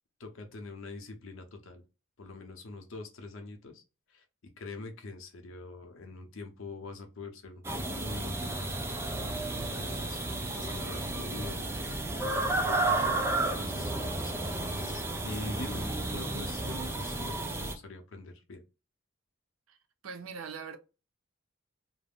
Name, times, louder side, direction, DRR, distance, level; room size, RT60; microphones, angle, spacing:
voice 1, 0.2-1.8 2.2-3.8 4.1-9.0 9.2-10.2 10.5-13.2 13.4-18.6, left 2 dB, 65° left, 0.7 m, -44 dB
sound 1, 7.6-17.7, right 2 dB, 10° right, 0.3 m, -32 dB
voice 2, 20.0-20.8, right 5 dB, 90° right, 0.5 m, -41 dB
2.4 x 2.0 x 3.4 m
head